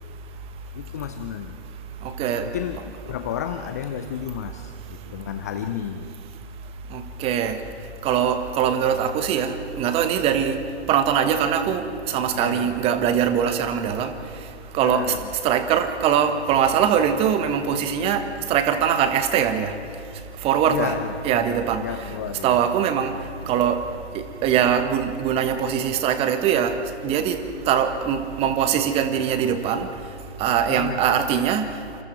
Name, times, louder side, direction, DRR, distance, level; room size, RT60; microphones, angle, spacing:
voice 1, 0.7-1.6 2.4-2.8 3.0-6.1 12.3-12.7 14.8-15.3 20.7-22.6 30.7-31.0, left 9 dB, 15° left, 8 dB, 0.4 m, -32 dB
voice 2, 1.7-2.5 5.0-5.2 6.9-20.9 21.2-22.1 22.4-32.0, right 8 dB, 15° right, 8 dB, 1.4 m, -23 dB
27.5 x 27.0 x 4.6 m, 2.6 s
figure-of-eight pair, 130°, 34 cm